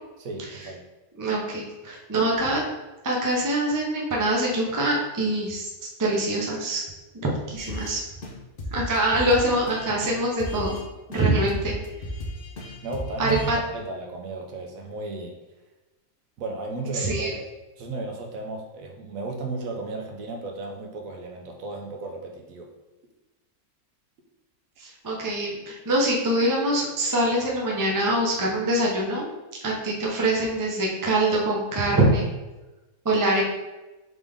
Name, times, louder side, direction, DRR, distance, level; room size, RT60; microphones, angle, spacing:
voice 1, 0.2-0.8 12.8-15.4 16.4-17.5 17.8-22.7, right 3 dB, 70° right, 1 dB, 1.0 m, -34 dB
voice 2, 1.2-2.6 3.0-5.7 6.0-6.8 7.2-8.0 8.7-10.8 11.1-11.7 13.2-13.6 16.9-17.3 24.8-29.3 29.6-32.3 33.0-33.4, right 1 dB, 25° right, -2 dB, 0.4 m, -24 dB
sound 1, 7.6-7.9 8.2-8.3 8.6-10.8 11.1-13.5, left 1 dB, 55° left, 0.7 m, -35 dB
3.7 x 3.5 x 3.4 m, 1.1 s
omnidirectional pair, 1.5 m